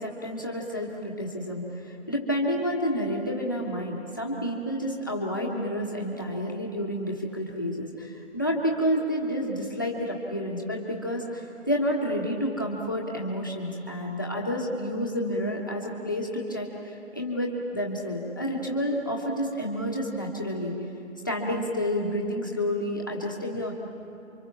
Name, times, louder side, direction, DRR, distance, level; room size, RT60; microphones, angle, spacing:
voice 1, 0.0-20.7 21.2-23.7, equal, 15° left, -1 dB, 1.4 m, -29 dB
28.0 x 25.0 x 7.3 m, 2.7 s
figure-of-eight pair, 180°, 40 cm